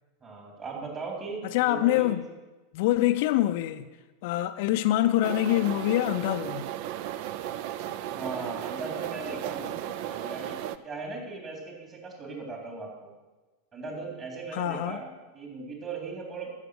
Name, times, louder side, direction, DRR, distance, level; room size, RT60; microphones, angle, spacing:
voice 1, 0.2-2.1 8.1-10.6 10.8-13.1 13.7-16.5, right 4 dB, 30° right, 3.6 m, -38 dB
voice 2, 1.5-2.3 2.7-3.9 4.2-6.7 14.5-15.0, left 14 dB, 55° left, 0.5 m, -25 dB
sound 1, 5.2-10.8, right 11 dB, 50° right, 0.5 m, -35 dB
14.5 x 6.6 x 6.4 m
figure-of-eight pair, 85°, 0 cm